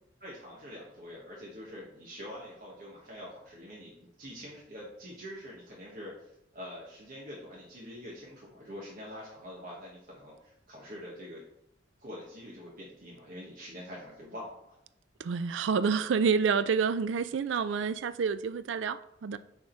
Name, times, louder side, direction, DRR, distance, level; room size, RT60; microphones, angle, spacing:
voice 1, 0.2-3.9 4.2-11.4 12.0-14.8, equal, 50° right, 1.3 m, -45 dB
voice 2, 15.2-19.4, right 5 dB, 85° right, 0.4 m, -28 dB
6.5 x 3.7 x 4.4 m
head